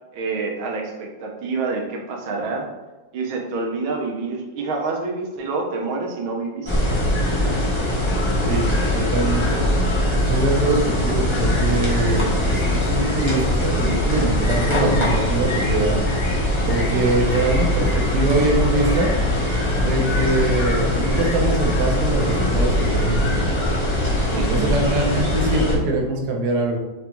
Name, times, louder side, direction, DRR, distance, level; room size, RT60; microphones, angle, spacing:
voice 1, 0.1-2.6 3.1-6.9 17.7-17.9 24.3-24.7, right 3 dB, 90° right, 1 dB, 1.6 m, -27 dB
sound 1, 6.7-25.8, left 1 dB, 25° left, 0.6 m, -21 dB
voice 2, 8.9-9.6 10.3-16.0 16.7-19.1 19.7-23.2 24.5-26.8, right 2 dB, 65° right, 0 dB, 1.2 m, -23 dB
5.0 x 3.3 x 3.0 m, 1.1 s
omnidirectional pair, 2.1 m